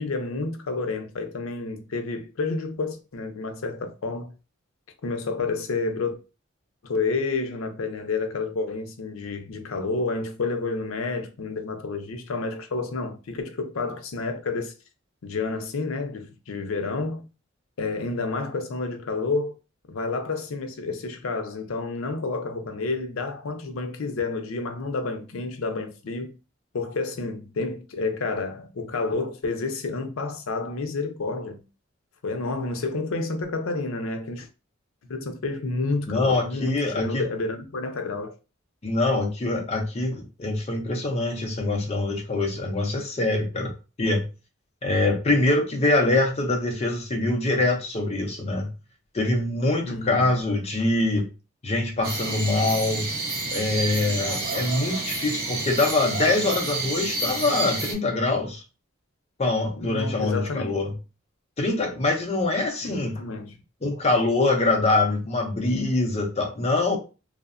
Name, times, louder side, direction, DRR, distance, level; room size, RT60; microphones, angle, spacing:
voice 1, 0.0-4.3 5.0-6.2 6.8-14.7 15.2-17.3 17.8-19.6 19.9-26.3 26.7-31.6 32.2-34.5 35.0-38.3 49.8-50.4 59.8-60.7 62.8-63.6, left 3 dB, 85° left, 0.5 m, -30 dB
voice 2, 36.1-37.2 38.8-43.7 44.0-44.2 44.8-48.7 49.1-51.3 51.6-53.1 53.5-58.6 59.4-60.9 61.6-63.2 63.8-67.0, left 2 dB, 30° left, 0.5 m, -24 dB
sound 1, 52.0-57.9, right 2 dB, 45° right, 0.7 m, -29 dB
2.7 x 2.1 x 2.4 m
head